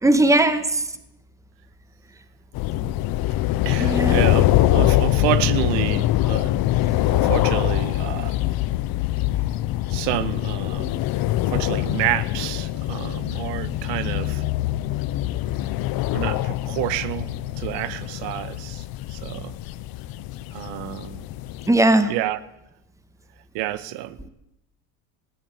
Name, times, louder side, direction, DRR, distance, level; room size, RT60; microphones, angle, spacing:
voice 1, 0.0-0.9 3.8-4.3 21.7-22.1, right 1 dB, 5° right, 2.1 m, -18 dB
sound 1, 2.5-21.7, left 15 dB, 55° left, 1.2 m, -24 dB
voice 2, 3.7-8.4 9.9-11.0 11.5-14.4 16.1-18.8 19.1-19.6 20.5-21.2 22.1-22.4 23.5-24.2, right 14 dB, 70° right, 1.7 m, -29 dB
20.0 x 19.0 x 9.4 m
cardioid pair, 130°, 44 cm